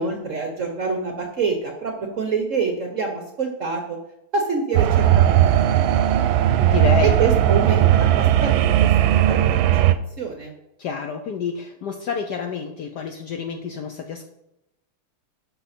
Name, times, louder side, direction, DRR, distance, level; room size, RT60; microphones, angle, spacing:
voice 1, 0.0-4.0 4.3-6.5 7.0-9.4 9.7-9.8 10.2-10.5, right 4 dB, 60° right, 4 dB, 0.8 m, -26 dB
sound 1, 4.7-9.9, right 12 dB, 75° right, 1.3 m, -17 dB
voice 2, 6.6-7.2 10.8-14.2, left 6 dB, 70° left, 5 dB, 1.0 m, -28 dB
11.5 x 5.6 x 4.2 m, 0.87 s
omnidirectional pair, 2.4 m